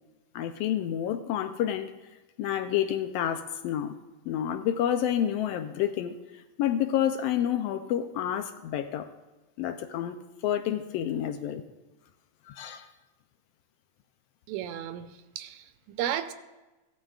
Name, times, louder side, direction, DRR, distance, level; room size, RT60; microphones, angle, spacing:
voice 1, 0.3-1.9 2.4-4.0 4.3-6.2 6.6-9.1 9.6-10.2 10.4-11.6 12.5-12.9, left 10 dB, 80° left, 9 dB, 1.4 m, -29 dB
voice 2, 14.5-15.1 15.4-16.3, right 11 dB, 80° right, 9 dB, 1.8 m, -33 dB
17.0 x 11.0 x 2.4 m, 1.1 s
omnidirectional pair, 3.3 m